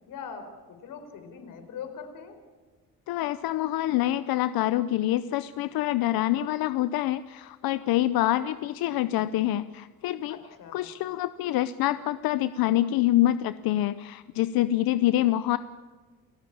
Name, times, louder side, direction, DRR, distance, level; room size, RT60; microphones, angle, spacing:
voice 1, 0.1-2.4 10.3-10.9, left 6 dB, 65° left, 7 dB, 4.6 m, -42 dB
voice 2, 3.1-10.4 10.7-15.6, left 14 dB, 85° left, 13 dB, 0.7 m, -26 dB
29.0 x 17.0 x 8.8 m, 1.4 s
cardioid pair, 155°, 35 cm